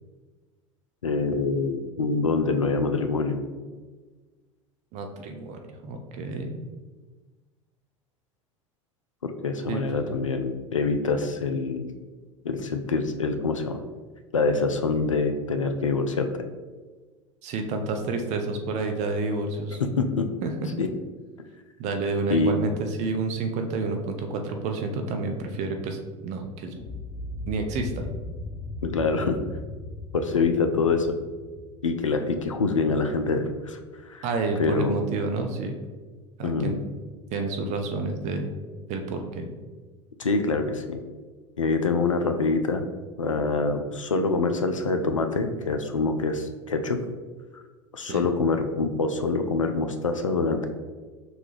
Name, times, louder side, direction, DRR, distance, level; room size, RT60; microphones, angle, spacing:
voice 1, 1.0-3.4 9.2-11.9 12.4-13.8 14.3-16.3 19.8-20.3 20.8-20.9 22.3-22.6 28.8-29.4 30.1-31.2 31.8-33.8 34.1-34.3 34.6-35.0 36.4-36.8 40.2-41.0 41.6-42.8 43.2-47.0 47.9-50.7, left 4 dB, 90° left, 7 dB, 0.4 m, -25 dB
voice 2, 4.9-6.5 9.7-9.8 17.4-19.8 20.4-20.5 21.8-26.0 26.2-26.7 27.5-28.1 34.2-35.7 36.4-36.7 37.3-38.5 38.9-39.5 48.0-48.3, right 3 dB, 45° right, 5 dB, 0.6 m, -29 dB
sound 1, 26.7-32.8, left 2 dB, 15° left, 0.8 m, -38 dB
6.2 x 2.3 x 3.2 m, 1.4 s
figure-of-eight pair, 75°, 16 cm